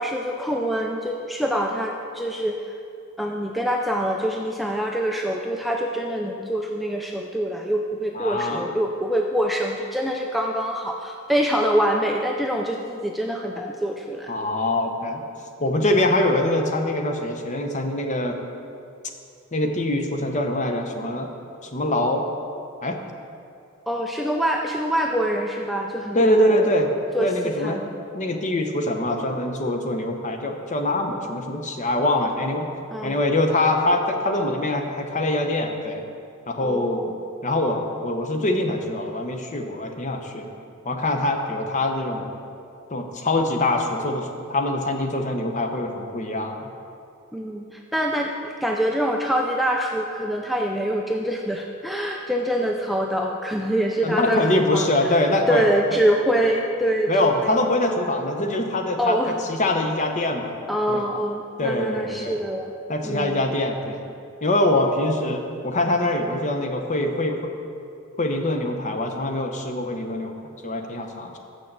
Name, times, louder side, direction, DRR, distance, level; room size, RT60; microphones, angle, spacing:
voice 1, 0.0-2.6 3.2-14.3 23.9-26.7 27.1-27.9 32.9-33.2 36.6-37.1 47.3-57.5 59.0-59.4 60.7-62.7 63.0-63.4, equal, ahead, 1 dB, 0.3 m, -25 dB
voice 2, 8.1-8.7 14.3-15.2 15.6-18.4 19.5-21.3 21.6-22.3 22.8-23.0 26.1-26.9 27.2-27.8 28.1-32.7 33.0-36.1 36.5-37.1 37.4-40.5 40.8-42.3 42.9-46.7 54.0-55.7 55.9-56.0 57.1-59.2 59.4-60.5 60.9-61.0 61.6-62.4 62.9-64.0 64.4-67.5 68.2-70.3 70.6-71.4, left 1 dB, 35° left, 4 dB, 0.7 m, -24 dB
6.6 x 6.3 x 7.3 m, 2.5 s
head